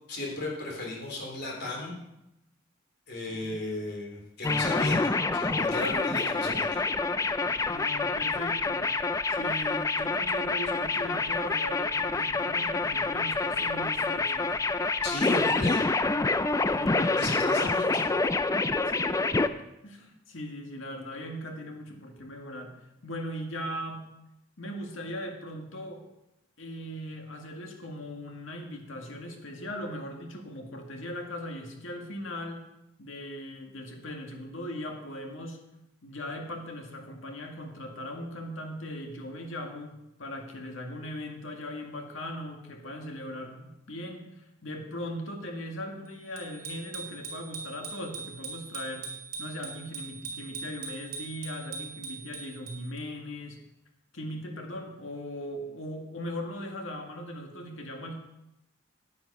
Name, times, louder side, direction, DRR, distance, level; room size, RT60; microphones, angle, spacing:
voice 1, 0.1-2.0 3.1-6.8 15.0-15.8 17.2-18.1, left 2 dB, 60° left, -2 dB, 3.7 m, -35 dB
sound 1, 4.4-19.5, left 3 dB, 15° left, 0.4 m, -27 dB
voice 2, 7.6-8.9 9.3-14.6 16.7-17.4 18.9-19.5 19.8-22.8 23.0-24.1 24.6-26.1 26.6-32.7 33.0-35.6 36.0-49.1 49.4-53.6 54.1-58.1, left 1 dB, 85° left, 3 dB, 1.9 m, -39 dB
Bicycle bell, 46.4-53.0, right 5 dB, 55° right, 3.8 m, -41 dB
10.0 x 9.6 x 5.4 m, 0.86 s
head